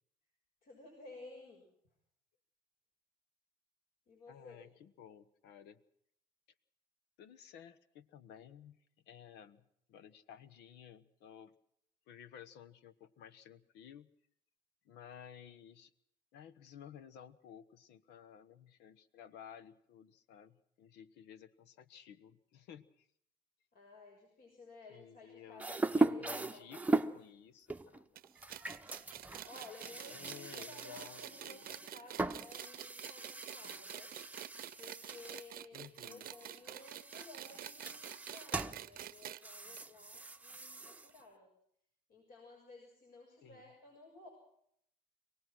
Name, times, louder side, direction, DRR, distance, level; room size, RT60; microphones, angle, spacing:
voice 1, 0.6-1.6 4.1-4.7 23.7-27.1 29.4-34.1 34.7-41.5 42.1-44.3, left 3 dB, 60° left, 0 dB, 6.6 m, -55 dB
voice 2, 4.3-5.8 7.2-8.8 9.1-11.5 12.1-14.1 14.8-15.9 16.3-23.1 24.9-28.1 30.1-31.7 35.7-36.3 43.4-43.6, left 9 dB, 85° left, 14 dB, 1.2 m, -55 dB
sound 1, 25.6-27.2 27.7-35.5 35.8-41.2, right 2 dB, 10° right, 0.8 m, -39 dB
sound 2, 28.2-39.4 39.8-39.9 40.1-40.2 41.1-41.2, right 13 dB, 60° right, 0.8 m, -48 dB
26.0 x 18.0 x 6.2 m, 0.71 s
cardioid pair, 110°, 17 cm